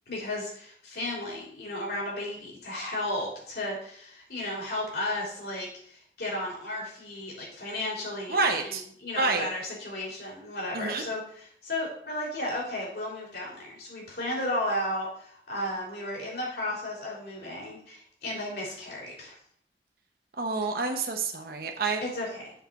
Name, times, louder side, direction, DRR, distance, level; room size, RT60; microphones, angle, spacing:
voice 1, 0.1-19.4 22.0-22.5, left 1 dB, 60° left, -3 dB, 3.6 m, -34 dB
voice 2, 8.3-8.8 9.2-9.4 10.7-11.0 20.4-22.0, right 4 dB, 55° right, 3 dB, 0.9 m, -28 dB
7.2 x 4.4 x 6.9 m, 0.62 s
head